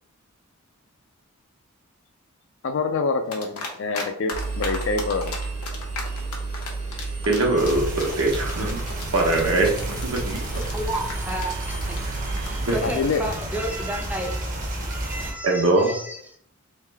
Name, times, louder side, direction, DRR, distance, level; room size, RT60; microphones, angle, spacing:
voice 1, 2.6-5.4 12.8-13.3, left 4 dB, 55° left, 8 dB, 0.4 m, -26 dB
sound 1, 3.3-4.0 4.3-13.8, left 4 dB, 90° left, 0.9 m, -35 dB
Engine, 4.3-13.0, right 3 dB, 90° right, 1.4 m, -32 dB
voice 2, 7.2-8.8 9.1-10.6 12.7-12.8 15.4-15.9, right 2 dB, 70° right, -1 dB, 1.1 m, -22 dB
sound 2, 7.6-15.3, right 1 dB, 35° right, 0.8 m, -32 dB
voice 3, 10.7-12.0 12.4-14.4 14.9-16.4, right 1 dB, 5° right, 2 dB, 0.5 m, -32 dB
3.2 x 3.1 x 3.4 m, 0.66 s
head